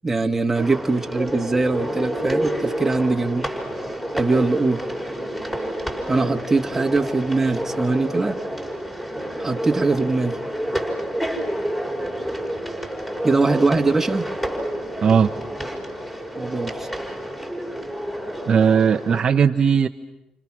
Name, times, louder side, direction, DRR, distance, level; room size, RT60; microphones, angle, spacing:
voice 1, 0.0-3.5 4.1-4.8 6.1-8.4 9.4-10.4 13.2-14.2 16.4-16.9, right 3 dB, 15° right, 4 dB, 1.8 m, -21 dB
sound 1, 0.5-19.2, equal, 10° left, 5.8 m, -29 dB
voice 2, 15.0-15.3 18.5-19.9, right 7 dB, 40° right, 6 dB, 0.9 m, -17 dB
29.5 x 29.0 x 6.2 m, 0.86 s
cardioid pair, 95°, 2 cm